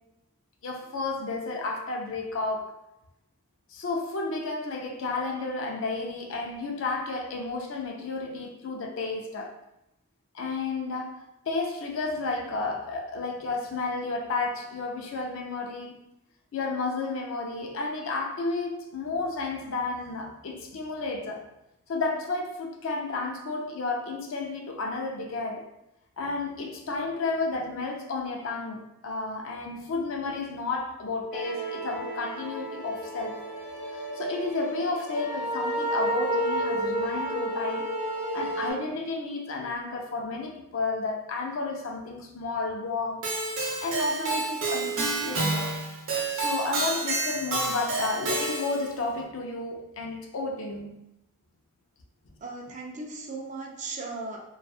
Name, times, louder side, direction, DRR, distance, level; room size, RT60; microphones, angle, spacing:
voice 1, 0.6-2.8 3.7-9.6 10.3-16.0 16.5-21.5 21.9-25.7 26.2-33.4 33.9-37.9 38.3-43.3 43.8-45.0 45.2-45.8 46.3-51.1, left 3 dB, 65° left, 1 dB, 0.4 m, -32 dB
sound 1, 31.3-38.7, right 1 dB, 10° left, 0.8 m, -31 dB
Keyboard (musical), 43.2-48.9, right 2 dB, 80° right, 0.8 m, -29 dB
voice 2, 52.4-54.4, right 3 dB, 35° right, 0 dB, 0.4 m, -37 dB
2.7 x 2.3 x 2.3 m, 0.87 s
head